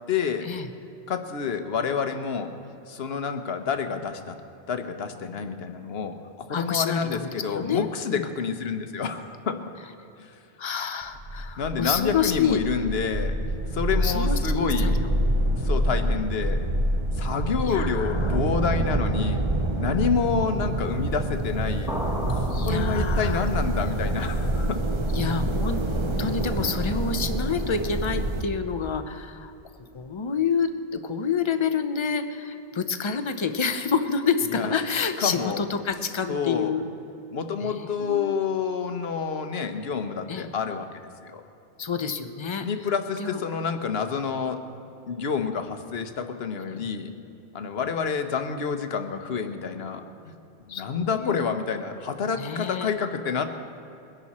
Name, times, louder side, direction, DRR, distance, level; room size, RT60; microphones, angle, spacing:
voice 1, 0.1-0.5 1.1-2.5 2.9-4.4 4.7-9.6 10.2-10.4 11.6-13.4 13.7-15.0 15.5-16.6 17.1-19.4 19.8-24.8 34.5-34.7 35.2-35.7 36.3-36.8 37.3-41.4 42.6-44.6 45.1-47.1 47.5-50.3 50.6-53.5, left 6 dB, 65° left, 7 dB, 1.1 m, -28 dB
voice 2, 6.5-8.3 10.6-12.6 13.9-14.9 17.6-18.4 22.5-23.5 25.1-25.8 26.2-29.5 29.9-36.8 37.6-38.3 40.3-40.5 41.8-42.7 43.2-43.4 46.7-46.9 50.7-51.3 52.4-52.9, left 6 dB, 30° left, 8 dB, 0.7 m, -28 dB
sound 1, 11.0-28.4, right 1 dB, 30° right, 0.8 m, -26 dB
sound 2, 21.9-23.6, equal, 5° right, 1.7 m, -34 dB
21.5 x 11.0 x 4.2 m, 2.9 s
omnidirectional pair, 1.1 m